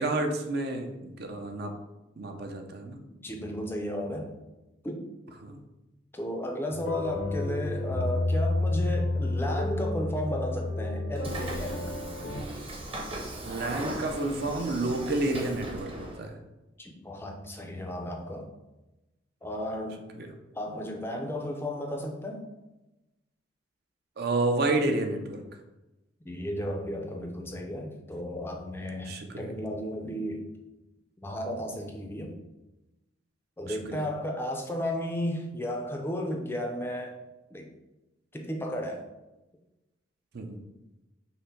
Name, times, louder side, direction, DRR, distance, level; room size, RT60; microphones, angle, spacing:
voice 1, 0.0-1.7 2.2-3.0 5.4-5.6 13.4-16.4 20.2-20.3 24.2-25.4 29.1-29.5 33.7-34.0 40.3-40.6, right 2 dB, 55° right, 5 dB, 0.6 m, -30 dB
voice 2, 3.2-4.3 4.8-5.1 6.1-11.9 16.8-18.5 19.4-20.0 20.5-22.4 26.3-30.4 31.2-32.4 33.6-37.2 37.5-37.7 38.3-39.0, equal, 10° left, 2 dB, 0.4 m, -34 dB
sound 1, 6.7-12.4, left 2 dB, 70° left, 0.7 m, -30 dB
Train / Sliding door, 11.2-16.2, right 1 dB, 30° right, 0.8 m, -38 dB
5.6 x 2.1 x 4.4 m, 1.0 s
head